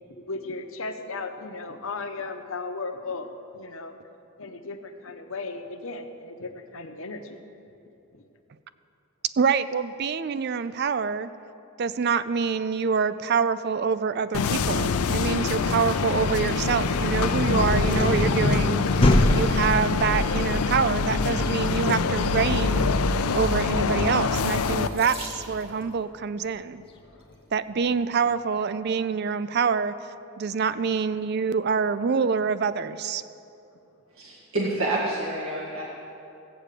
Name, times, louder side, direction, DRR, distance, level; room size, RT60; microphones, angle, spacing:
voice 1, 0.1-3.9 4.4-7.4 8.1-8.2 27.3-27.4, left 3 dB, 65° left, 6 dB, 1.0 m, -36 dB
voice 2, 9.4-11.3 11.8-22.9 23.3-26.8 27.5-29.9 30.4-33.2, right 5 dB, 50° right, 14 dB, 0.4 m, -26 dB
sound 1, 14.3-24.9, left 4 dB, 85° left, 0.6 m, -25 dB
sound 2, 16.1-25.9, left 1 dB, 25° left, 1.0 m, -27 dB
Water tap faucet / Sink (filling or washing), 24.7-25.9 26.9-27.3 28.0-28.1 28.5-28.6, right 2 dB, 25° right, 2.0 m, -42 dB
voice 3, 34.1-35.8, right 2 dB, 70° right, -5 dB, 1.9 m, -28 dB
15.5 x 8.9 x 6.7 m, 2.7 s
head